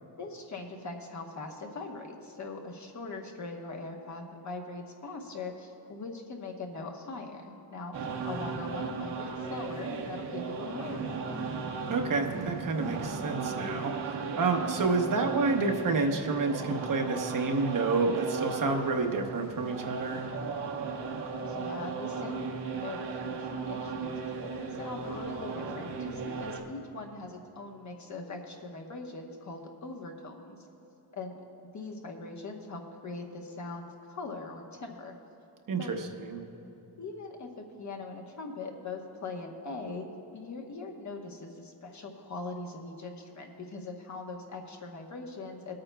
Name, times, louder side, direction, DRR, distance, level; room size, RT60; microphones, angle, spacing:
voice 1, 0.2-7.9 8.3-11.2 21.4-24.1 24.4-30.6 31.1-31.4 31.7-35.2 35.8-35.9 37.0-37.5 37.8-40.1 40.3-45.8, left 3 dB, 40° left, 1 dB, 1.1 m, -41 dB
sound 1, 7.9-26.6, right 4 dB, 70° right, 1.1 m, -36 dB
voice 2, 11.9-20.2 35.7-36.4, right 3 dB, 50° right, 3 dB, 0.9 m, -29 dB
22.5 x 8.8 x 2.3 m, 3.0 s
wide cardioid pair, 145°, 42 cm